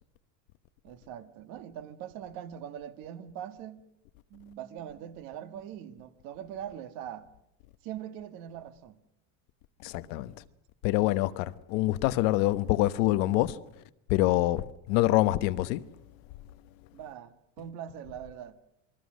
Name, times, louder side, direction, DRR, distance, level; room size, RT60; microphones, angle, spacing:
voice 1, 0.8-3.8 4.3-7.3 7.8-9.0 16.9-18.6, right 10 dB, 55° right, 1.8 m, -42 dB
voice 2, 9.8-10.4 10.8-13.8 14.1-15.9, left 17 dB, 65° left, 1.1 m, -26 dB
28.0 x 21.0 x 6.4 m
cardioid pair, 145°, 40 cm